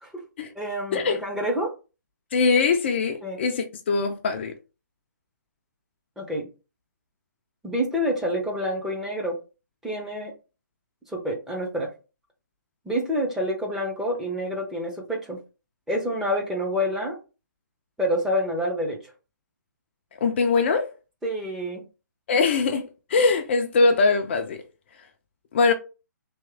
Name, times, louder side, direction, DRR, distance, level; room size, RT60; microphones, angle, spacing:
voice 1, 0.6-1.7 3.2-3.4 6.2-6.5 7.6-9.4 9.8-10.3 11.1-11.9 12.8-15.4 15.9-17.2 18.0-19.0 21.2-21.8, equal, 5° right, 0.7 m, -27 dB
voice 2, 2.3-4.5 20.2-20.9 22.3-24.6 25.5-25.7, left 4 dB, 35° left, 0.5 m, -22 dB
3.5 x 3.0 x 3.4 m
figure-of-eight pair, 130°, 10 cm